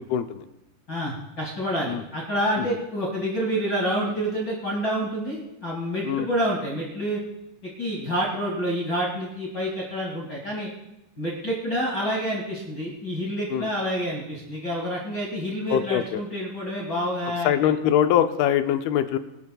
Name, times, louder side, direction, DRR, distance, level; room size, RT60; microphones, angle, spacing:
voice 1, 0.1-0.5 1.9-2.0 6.0-6.3 13.5-13.7 15.7-16.2 17.5-19.2, left 10 dB, 80° left, 9 dB, 2.5 m, -22 dB
voice 2, 0.9-7.2 7.8-10.7 11.2-17.5, equal, 35° left, -6 dB, 2.0 m, -28 dB
23.5 x 12.0 x 2.3 m, 0.89 s
omnidirectional pair, 4.6 m